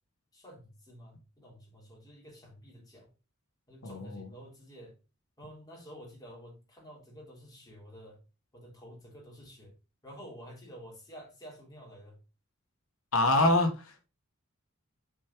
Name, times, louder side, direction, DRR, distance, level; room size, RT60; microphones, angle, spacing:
voice 1, 0.3-3.1 3.7-4.9 5.4-8.2 8.5-9.7 10.0-12.2, equal, 20° left, 3.4 m, -50 dB
voice 2, 3.8-4.2 13.1-14.1, left 2 dB, 70° left, 1.3 m, -26 dB
8.4 x 4.6 x 2.9 m
head